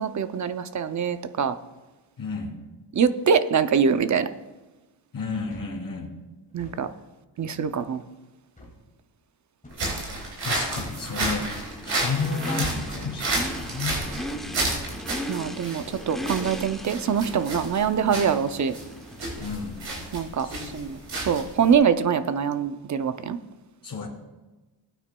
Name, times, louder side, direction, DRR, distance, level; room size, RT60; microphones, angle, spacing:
voice 1, 0.0-1.6 2.9-4.3 6.5-6.9 7.4-8.0 14.6-14.8 15.3-18.7 20.1-23.4, right 7 dB, 40° right, 11 dB, 0.5 m, -24 dB
voice 2, 2.2-2.6 5.1-6.1 6.8-6.9 10.4-11.5 11.8-14.0 14.3-14.7 19.4-19.8 20.4-20.9 23.8-24.1, left 4 dB, 50° left, -1 dB, 2.7 m, -32 dB
sound 1, 5.5-5.8 6.5-6.8 7.5-7.8 8.6-8.8 9.6-9.9 10.8-11.1 12.0-12.2 13.0-13.2 14.0-14.2 15.2-15.4 16.2-16.4 17.2-17.5, left 1 dB, 15° left, 2.3 m, -48 dB
sound 2, 9.7-21.7, right 2 dB, 80° right, 3.9 m, -31 dB
Race car auto racing / Idling / Accelerating revving vroom, 10.5-20.0, equal, ahead, 0.7 m, -38 dB
20.0 x 9.1 x 2.2 m, 1.1 s
wide cardioid pair, 175°, 45 cm